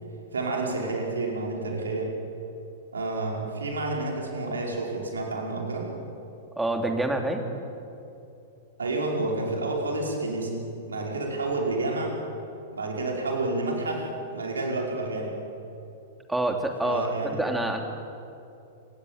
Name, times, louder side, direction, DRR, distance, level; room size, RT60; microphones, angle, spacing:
voice 1, 0.3-2.1 2.9-5.9 8.8-10.6 10.9-12.1 12.7-14.0 14.3-15.3 16.8-17.4, right 2 dB, 75° right, 0 dB, 5.4 m, -29 dB
voice 2, 6.6-7.5 16.3-17.8, right 1 dB, 5° right, 4 dB, 2.9 m, -27 dB
28.0 x 17.0 x 9.1 m, 2.8 s
figure-of-eight pair, 100°, 0 cm